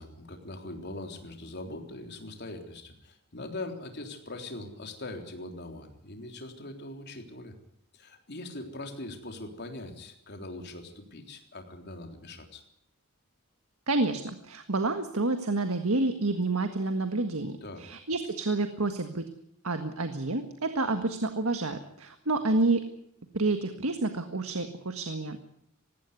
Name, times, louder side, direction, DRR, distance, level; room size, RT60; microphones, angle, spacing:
voice 1, 0.0-7.6 7.9-12.6 17.6-17.8, left 2 dB, 50° left, 4 dB, 3.6 m, -41 dB
voice 2, 13.9-19.2 19.6-22.8 23.3-25.5, right 2 dB, 75° right, 8 dB, 1.7 m, -29 dB
19.5 x 16.5 x 9.5 m, 0.72 s
head